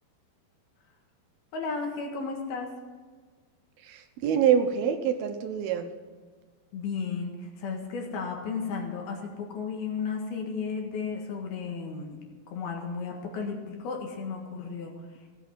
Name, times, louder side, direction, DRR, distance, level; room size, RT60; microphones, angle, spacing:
voice 1, 1.5-2.7 6.7-12.2 12.5-15.3, left 5 dB, 75° left, 1 dB, 3.6 m, -34 dB
voice 2, 3.8-5.9, right 8 dB, 75° right, 6 dB, 2.7 m, -25 dB
16.0 x 8.2 x 7.6 m, 1.4 s
omnidirectional pair, 4.6 m